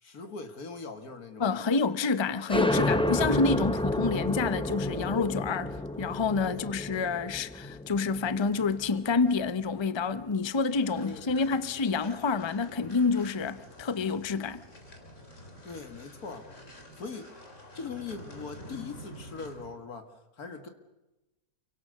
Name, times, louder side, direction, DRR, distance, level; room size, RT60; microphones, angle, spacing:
voice 1, 0.0-1.9 6.5-6.8 11.0-11.5 15.6-16.5 17.0-17.3 17.7-20.7, left 4 dB, 80° left, 2.5 m, -41 dB
voice 2, 1.4-14.6, left 4 dB, 25° left, 0.7 m, -28 dB
sound 1, 2.5-9.8, left 1 dB, 5° left, 1.0 m, -30 dB
sound 2, 10.8-19.7, equal, 55° left, 3.9 m, -48 dB
29.0 x 24.0 x 6.6 m
omnidirectional pair, 1.5 m